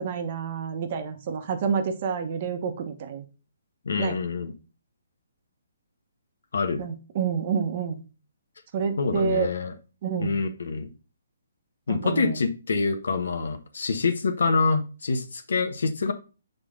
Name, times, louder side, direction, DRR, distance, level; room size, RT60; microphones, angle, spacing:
voice 1, 0.0-3.3 4.0-4.2 6.8-8.0 8.7-9.5 10.0-10.4 11.9-12.4, right 6 dB, 40° right, 1.1 m, -28 dB
voice 2, 3.8-4.5 6.5-6.8 9.0-9.7 10.2-10.9 11.9-16.1, left 4 dB, 75° left, 1.1 m, -26 dB
6.7 x 4.0 x 3.7 m
hypercardioid pair, 155°, 0 cm